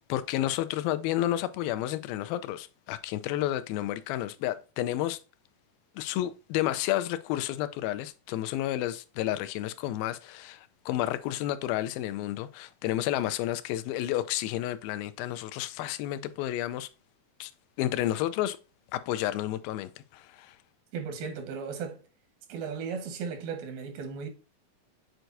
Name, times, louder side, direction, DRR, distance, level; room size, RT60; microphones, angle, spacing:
voice 1, 0.1-5.2 6.0-16.9 17.4-17.5 17.8-18.6 18.9-20.5, left 13 dB, 90° left, 2.4 m, -31 dB
voice 2, 20.9-22.0 22.5-24.3, right 5 dB, 90° right, 3.0 m, -36 dB
7.9 x 4.6 x 2.6 m
omnidirectional pair, 4.1 m